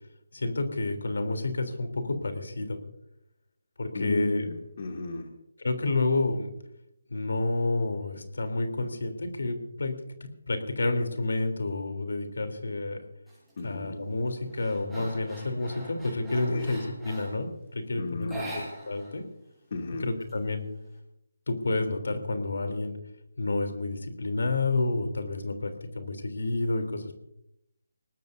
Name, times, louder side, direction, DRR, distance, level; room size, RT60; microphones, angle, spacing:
voice 1, 0.3-2.8 3.8-4.5 5.6-6.5 7.1-9.9 10.5-13.0 13.6-18.4 18.9-19.2 20.0-20.7 21.5-23.0 23.4-27.2, left 2 dB, 75° left, 6 dB, 3.3 m, -29 dB
voice 2, 3.9-5.3 13.6-14.0 16.5-16.7 18.0-18.6 19.7-20.1, left 3 dB, 45° left, 1 dB, 2.5 m, -35 dB
sound 1, 13.3-13.6 14.0-17.5 18.2-19.2 19.4-19.5 19.9-20.9, right 1 dB, ahead, 7.3 m, -43 dB
24.0 x 19.0 x 2.7 m, 0.79 s
figure-of-eight pair, 165°, 0 cm